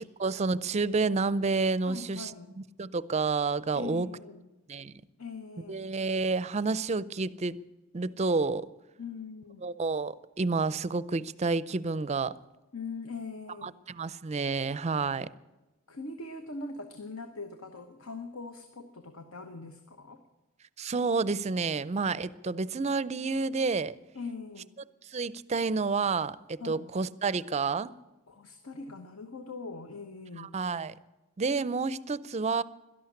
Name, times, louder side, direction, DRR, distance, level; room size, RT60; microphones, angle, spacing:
voice 1, 0.2-2.3 2.6-4.1 4.7-5.0 5.7-7.6 7.9-8.7 9.6-12.3 13.6-15.3 20.8-23.9 25.0-27.9 30.4-30.9 31.4-32.6, right 4 dB, 30° right, 18 dB, 0.4 m, -29 dB
voice 2, 1.9-2.5 3.7-4.4 5.2-5.8 9.0-9.6 12.7-13.7 15.9-20.2 24.1-24.7 26.6-26.9 28.3-30.5, left 3 dB, 75° left, 7 dB, 1.1 m, -41 dB
12.5 x 11.5 x 9.8 m, 1.1 s
head